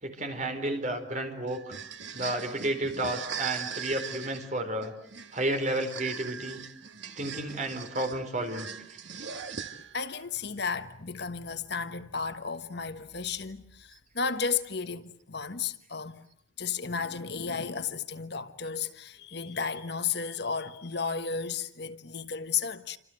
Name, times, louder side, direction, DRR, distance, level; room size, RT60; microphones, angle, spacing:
voice 1, 0.0-1.8 2.1-4.9 5.3-6.6 7.2-8.7, right 1 dB, 35° right, 4.4 m, -31 dB
sound 1, 1.5-10.1, right 7 dB, 65° right, 1.9 m, -40 dB
voice 2, 9.9-16.1 16.6-23.0, left 5 dB, 55° left, 1.4 m, -33 dB
29.0 x 26.5 x 7.9 m
head